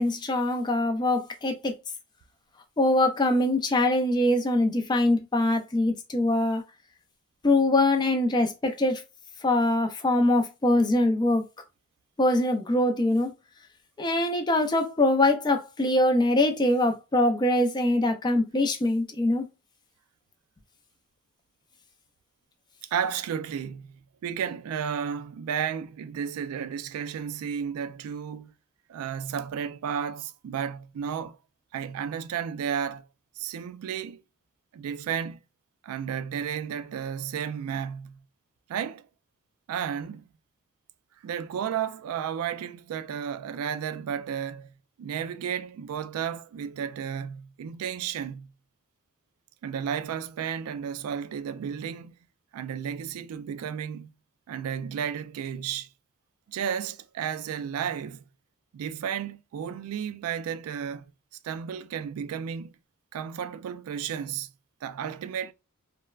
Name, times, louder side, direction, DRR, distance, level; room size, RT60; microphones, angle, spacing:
voice 1, 0.0-1.7 2.8-6.6 7.4-9.0 9.4-11.5 12.2-13.3 14.0-19.4, left 1 dB, 20° left, 0.4 m, -23 dB
voice 2, 22.9-28.5 28.9-31.4 31.7-33.1 33.4-34.2 34.7-35.4 35.8-38.2 38.7-39.1 39.7-40.3 41.2-44.7 45.0-48.5 49.6-52.1 52.5-54.1 54.5-55.9 56.5-58.2 58.7-61.1 61.4-62.7 63.1-64.5 64.8-65.5, right 8 dB, 85° right, 0.3 m, -33 dB
3.2 x 2.1 x 2.3 m
head